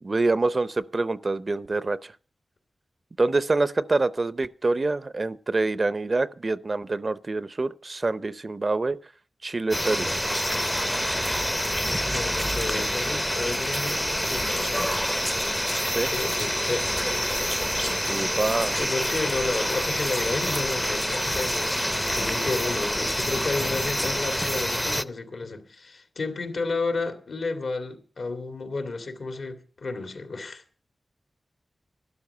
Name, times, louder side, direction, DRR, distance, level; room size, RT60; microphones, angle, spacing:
voice 1, 0.0-2.1 3.2-9.0 9.4-10.1 14.6-14.7 15.9-16.1 18.1-18.8, right 3 dB, 40° right, 0.5 m, -26 dB
sound 1, 9.7-25.0, equal, 5° left, 0.5 m, -27 dB
voice 2, 12.1-14.9 16.1-17.0 18.8-30.6, left 3 dB, 75° left, 2.2 m, -32 dB
12.0 x 11.5 x 6.7 m
wide cardioid pair, 95°, 0 cm